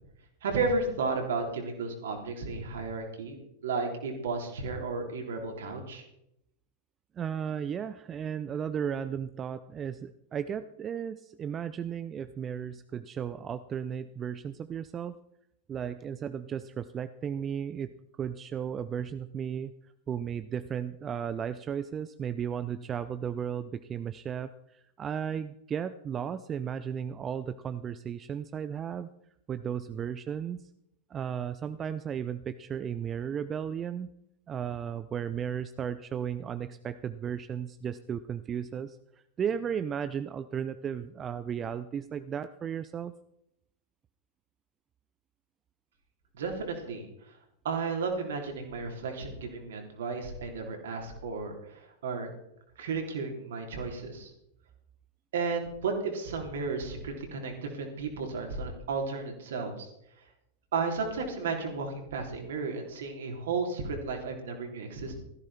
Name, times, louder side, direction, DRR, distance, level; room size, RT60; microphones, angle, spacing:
voice 1, 0.4-6.0 46.3-47.1 47.6-52.3 52.8-54.3 55.3-59.9 60.7-65.2, right 4 dB, 60° right, 3 dB, 3.5 m, -33 dB
voice 2, 7.1-15.2 15.7-29.1 29.5-30.7 31.1-34.1 34.5-39.0 39.4-43.1, right 8 dB, 25° right, 13 dB, 0.6 m, -35 dB
16.5 x 14.5 x 4.3 m, 0.80 s
figure-of-eight pair, 90°, 0 cm